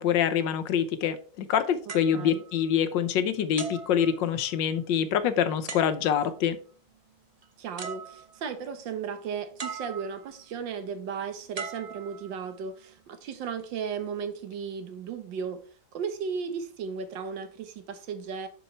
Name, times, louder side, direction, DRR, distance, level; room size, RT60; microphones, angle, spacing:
voice 1, 0.0-6.6, left 8 dB, 85° left, 1.5 m, -25 dB
sound 1, 1.9-3.1 3.6-4.7 5.7-6.4 7.4-7.5 7.8-8.6 9.6-10.4 11.5-12.7 13.4-13.6, right 5 dB, 40° right, 0.5 m, -41 dB
voice 2, 1.9-2.4 7.6-15.6 15.9-18.5, right 6 dB, 90° right, 1.7 m, -35 dB
7.1 x 5.4 x 4.4 m
omnidirectional pair, 1.9 m